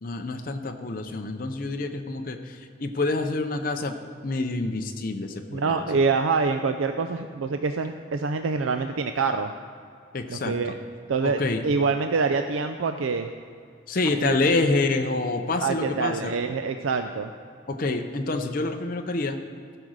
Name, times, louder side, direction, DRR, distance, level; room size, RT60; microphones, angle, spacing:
voice 1, 0.0-3.9 4.2-5.8 10.1-10.5 11.2-11.6 13.9-16.3 17.7-19.4, left 3 dB, 45° left, 5 dB, 0.6 m, -27 dB
voice 2, 5.5-9.5 10.3-10.7 11.1-13.3 14.2-14.4 15.6-17.3, right 4 dB, 85° right, 7 dB, 0.4 m, -26 dB
14.5 x 5.0 x 6.3 m, 2.3 s
head